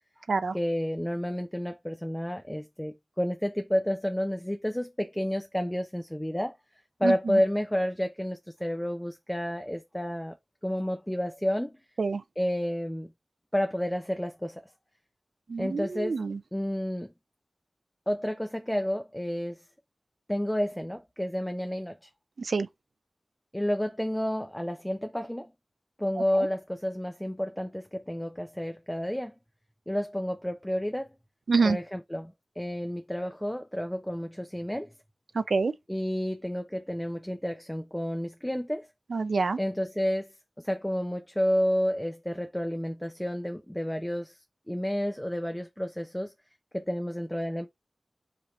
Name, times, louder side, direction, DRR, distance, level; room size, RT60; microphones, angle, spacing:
voice 1, 0.5-6.6 7.0-10.4 10.6-11.8 12.4-13.1 13.5-14.6 15.6-16.2 16.5-17.1 18.1-19.6 20.3-22.1 23.5-25.5 26.0-29.3 29.9-31.1 31.6-34.9 35.9-38.9 39.6-44.4 44.7-46.3 46.7-47.7, equal, 10° left, 0.6 m, -30 dB
voice 2, 7.0-7.4 12.0-12.2 15.5-16.4 22.4-22.7 31.5-31.8 35.4-35.7 39.1-39.6, right 4 dB, 85° right, 0.4 m, -26 dB
5.1 x 2.9 x 3.1 m
wide cardioid pair, 70°, 0 cm